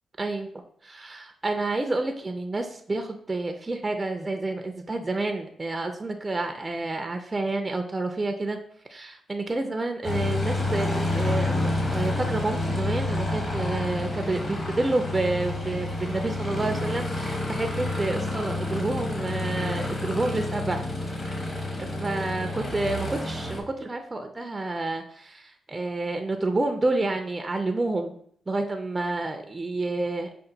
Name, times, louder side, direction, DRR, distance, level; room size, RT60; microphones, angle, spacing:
voice 1, 0.2-8.6 8.9-20.8 21.8-28.1 28.5-30.3, right 2 dB, 25° right, 5 dB, 0.4 m, -29 dB
Aircraft, 10.0-23.6, left 2 dB, 35° left, 1.1 m, -29 dB
5.3 x 2.2 x 3.9 m, 0.62 s
cardioid pair, 100°, 0 cm